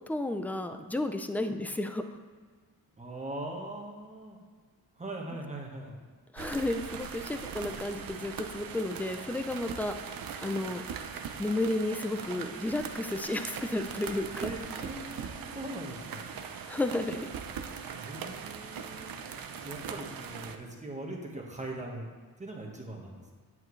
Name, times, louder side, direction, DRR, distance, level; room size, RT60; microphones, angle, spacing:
voice 1, 0.1-2.0 6.3-9.9 10.4-10.8 11.4-14.5 16.7-17.3, left 2 dB, 5° left, 7 dB, 0.4 m, -32 dB
voice 2, 3.0-4.4 4.9-6.0 14.4-16.3 18.0-19.1 19.6-23.3, right 1 dB, 20° right, -1 dB, 1.5 m, -41 dB
sound 1, 6.4-20.6, right 6 dB, 60° right, 0.7 m, -40 dB
9.0 x 8.4 x 3.2 m, 1.5 s
wide cardioid pair, 120°, 38 cm